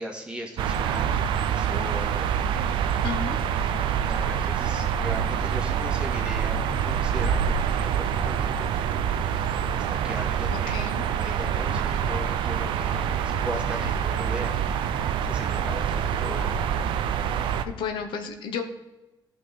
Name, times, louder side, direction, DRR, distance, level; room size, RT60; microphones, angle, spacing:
voice 1, 0.0-2.3 3.6-6.6 6.8-8.7 9.7-10.9 11.1-14.6 15.2-16.6, right 1 dB, 10° right, 1 dB, 1.8 m, -38 dB
sound 1, 0.6-17.6, right 8 dB, 90° right, 0.5 m, -26 dB
voice 2, 3.0-3.3 10.5-11.0 17.7-18.6, left 6 dB, 80° left, 6 dB, 0.9 m, -32 dB
14.5 x 5.7 x 4.0 m, 1.1 s
cardioid pair, 110°, 8 cm